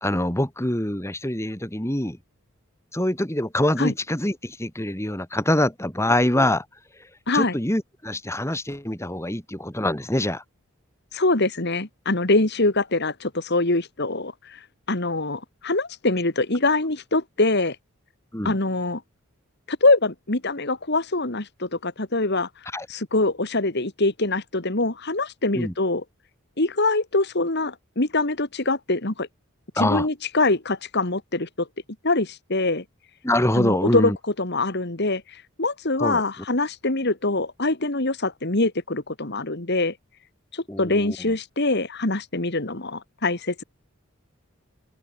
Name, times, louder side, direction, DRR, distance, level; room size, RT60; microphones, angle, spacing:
voice 1, 0.0-2.2 2.9-6.6 7.3-10.4 18.3-18.6 22.7-22.9 25.5-25.7 29.8-30.1 33.2-34.2 36.0-36.2 40.7-41.2, left 1 dB, 15° left, 2.8 m, -24 dB
voice 2, 7.3-7.6 11.1-17.8 18.4-19.0 19.7-22.5 22.9-26.0 26.6-29.3 29.8-31.7 32.0-32.8 33.5-40.0 40.5-43.6, left 2 dB, 50° left, 2.3 m, -24 dB
head